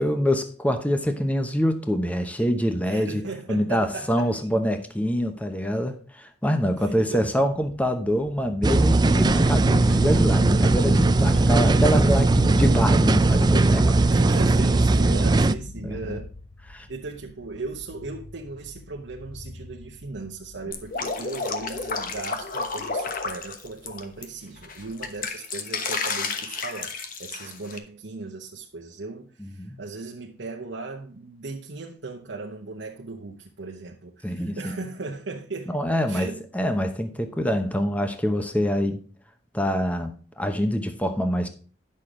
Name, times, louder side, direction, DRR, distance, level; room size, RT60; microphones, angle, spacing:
voice 1, 0.0-3.2 3.5-14.0 15.8-16.2 16.7-16.9 29.4-29.8 34.2-34.6 35.7-39.0 39.5-41.5, equal, 10° left, 0.9 m, -25 dB
voice 2, 2.8-4.3 6.8-7.2 14.1-16.3 16.9-35.7 36.1-36.4, right 3 dB, 80° right, 1.0 m, -37 dB
sound 1, 7.5-25.2, left 1 dB, 80° left, 1.9 m, -41 dB
sound 2, 8.6-15.5, right 2 dB, 25° right, 0.4 m, -19 dB
Drip, 20.7-24.2 24.6-27.8, left 4 dB, 50° left, 1.1 m, -31 dB
10.5 x 6.6 x 3.8 m
head